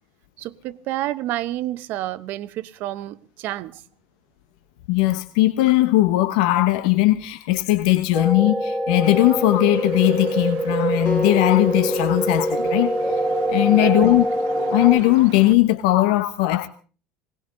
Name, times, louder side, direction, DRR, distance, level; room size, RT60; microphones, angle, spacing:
voice 1, 0.4-3.8 13.7-14.2, right 14 dB, 55° right, 0.9 m, -30 dB
voice 2, 4.9-13.2 13.5-14.2 14.7-16.7, left 17 dB, 85° left, 0.9 m, -19 dB
sound 1, 8.1-15.0, equal, ahead, 0.9 m, -25 dB
Bird, 9.0-15.5, right 14 dB, 80° right, 1.4 m, -33 dB
Acoustic guitar, 11.1-14.3, left 3 dB, 35° left, 1.7 m, -31 dB
20.0 x 18.5 x 3.8 m
cardioid pair, 140°, 4 cm